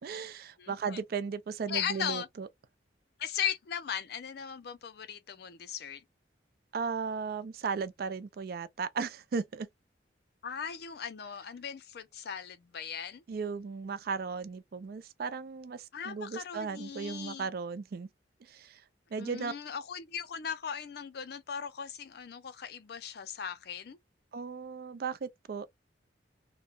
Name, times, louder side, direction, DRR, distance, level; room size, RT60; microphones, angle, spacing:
voice 1, 0.0-2.5 6.7-9.7 13.3-18.1 18.4-18.8 19.1-19.5 24.3-25.7, right 5 dB, 55° right, 0.4 m, -36 dB
voice 2, 0.6-1.0 1.7-2.3 3.2-6.0 10.4-13.2 15.9-17.5 19.2-24.0, left 8 dB, 60° left, 0.4 m, -38 dB
3.0 x 2.1 x 2.3 m
head